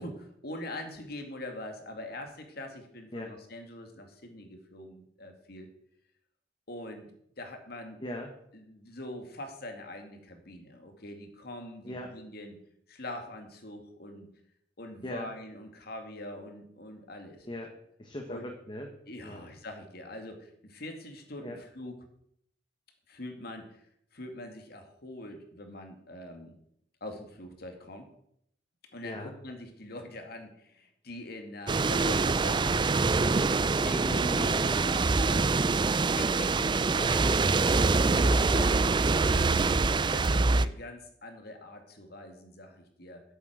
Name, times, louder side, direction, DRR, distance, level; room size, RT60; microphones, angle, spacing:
voice 1, 0.0-5.7 6.7-7.1 7.4-8.0 8.5-12.6 12.9-14.3 14.8-17.5 18.3-18.5 19.1-22.0 23.1-23.8 24.1-26.5 27.0-28.1 28.9-35.6 36.2-36.5 37.3-39.0 39.3-39.7 40.1-43.2, left 1 dB, 60° left, 5 dB, 2.2 m, -43 dB
voice 2, 18.0-18.9 19.2-19.4 21.4-21.6 29.0-29.3 34.0-35.1 36.3-37.3 37.6-38.1 39.4-39.8, left 1 dB, 25° left, 3 dB, 1.3 m, -40 dB
sound 1, 31.7-40.7, right 3 dB, 25° right, 0.4 m, -25 dB
8.4 x 8.0 x 8.0 m, 0.72 s
head